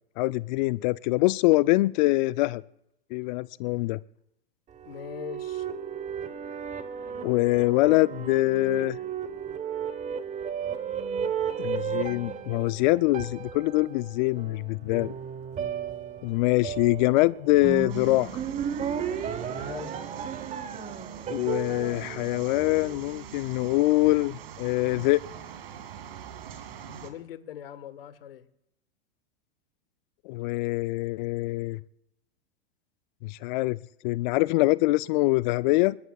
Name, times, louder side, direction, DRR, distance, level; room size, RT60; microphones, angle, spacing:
voice 1, 0.2-2.6 3.1-4.0 7.2-9.0 11.6-15.1 16.2-18.4 21.3-25.2 30.3-31.8 33.2-36.0, left 20 dB, 50° left, 17 dB, 0.4 m, -24 dB
sound 1, 4.7-23.3, right 8 dB, 25° right, 1.1 m, -34 dB
voice 2, 4.8-5.7 19.6-20.0 26.9-28.5, left 10 dB, 75° left, 13 dB, 1.4 m, -41 dB
sound 2, 17.9-27.1, right 8 dB, 75° right, 2.2 m, -43 dB
28.0 x 13.0 x 2.3 m, 0.82 s
hypercardioid pair, 110°, 29 cm